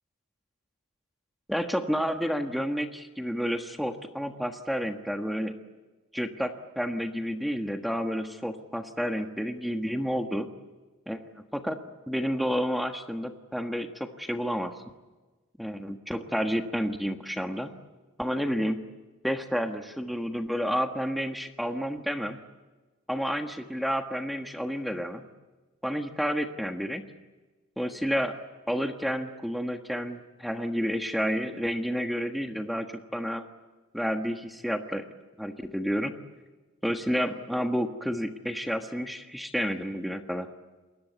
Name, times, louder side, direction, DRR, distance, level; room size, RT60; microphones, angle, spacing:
voice 1, 1.5-5.5 6.1-10.5 11.1-11.8 12.1-14.7 15.6-17.7 18.2-18.8 19.2-22.4 23.1-25.3 25.8-27.0 27.8-28.3 28.7-33.4 33.9-35.1 35.4-36.2 36.8-40.5, equal, ahead, 6 dB, 1.4 m, -30 dB
28.0 x 21.5 x 8.2 m, 1.2 s
head